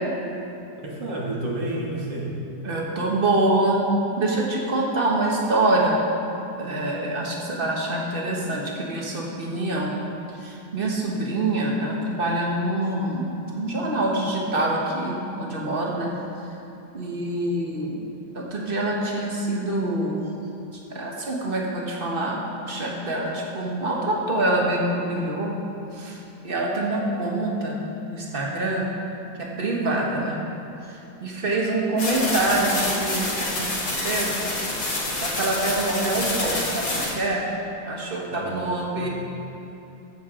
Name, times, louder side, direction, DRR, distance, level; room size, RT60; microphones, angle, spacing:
voice 1, 0.8-2.4 38.3-39.1, right 1 dB, 80° right, -4 dB, 2.1 m, -31 dB
voice 2, 2.6-3.9 4.2-5.9 6.6-10.0 10.4-16.1 16.9-18.0 18.3-20.3 20.9-25.6 25.9-28.9 29.4-30.5 31.2-34.4 35.2-37.5 37.9-39.1, right 2 dB, 35° right, -2 dB, 1.2 m, -25 dB
sound 1, 32.0-37.1, left 2 dB, 50° left, 2.0 m, -27 dB
14.0 x 6.7 x 3.7 m, 2.9 s
omnidirectional pair, 1.9 m